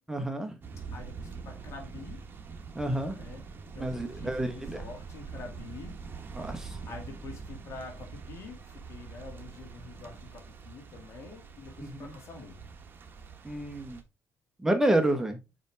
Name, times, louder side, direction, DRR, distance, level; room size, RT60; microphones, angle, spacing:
voice 1, 0.1-0.6 2.7-3.2 3.7-4.8 6.3-6.8 11.8-12.1 13.4-14.0 14.6-15.4, right 1 dB, 10° right, 1.3 m, -29 dB
sound 1, 0.6-14.0, right 5 dB, 40° right, 1.3 m, -44 dB
voice 2, 0.9-2.2 3.1-3.4 3.7-6.0 6.8-12.6 15.1-15.2, left 4 dB, 60° left, 2.5 m, -46 dB
5.4 x 5.1 x 3.5 m
cardioid pair, 85°, 5 cm